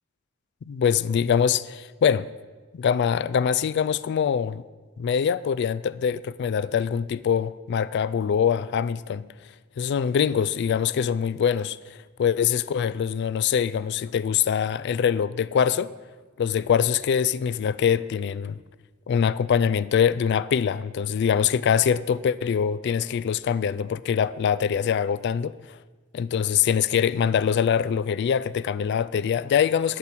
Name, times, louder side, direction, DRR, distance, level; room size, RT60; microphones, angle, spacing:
voice 1, 0.7-2.3 2.7-4.6 5.0-9.3 9.8-15.9 16.4-18.6 19.1-25.8 26.1-30.0, left 7 dB, 55° left, 0.3 m, -24 dB
8.9 x 5.9 x 7.7 m
head